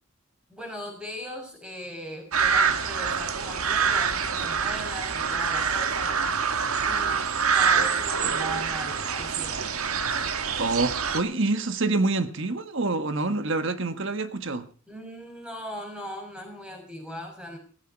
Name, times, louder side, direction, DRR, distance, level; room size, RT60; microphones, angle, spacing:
voice 1, 0.5-6.2 6.8-7.2 7.5-9.7 14.9-17.6, equal, 5° right, 5.7 m, -39 dB
sound 1, 2.3-11.2, right 6 dB, 85° right, 1.7 m, -26 dB
voice 2, 10.6-14.7, right 3 dB, 60° right, 1.4 m, -26 dB
16.0 x 15.0 x 4.5 m
head